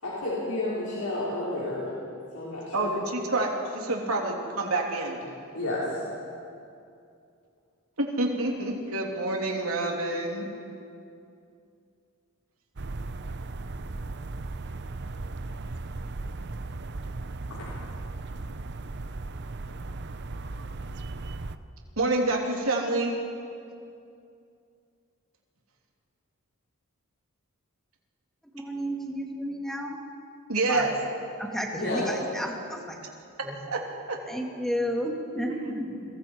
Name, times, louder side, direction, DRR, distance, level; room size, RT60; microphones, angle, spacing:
voice 1, 0.0-1.9 2.3-2.9 5.5-6.0 17.5-17.7 31.8-32.1, left 2 dB, 90° left, -7 dB, 4.8 m, -31 dB
voice 2, 2.7-5.2 8.0-10.5 22.0-23.1 30.5-30.9 33.7-33.8 34.1-34.2 35.6-35.8, right 2 dB, 80° right, 0 dB, 3.1 m, -27 dB
sound 1, 12.8-21.6, right 2 dB, 55° right, 0.7 m, -36 dB
voice 3, 28.5-30.0 30.7-30.9 31.4-33.0 33.4-33.6 34.3-35.9, equal, ahead, 0 dB, 2.5 m, -32 dB
29.5 x 22.5 x 4.7 m, 2.5 s
head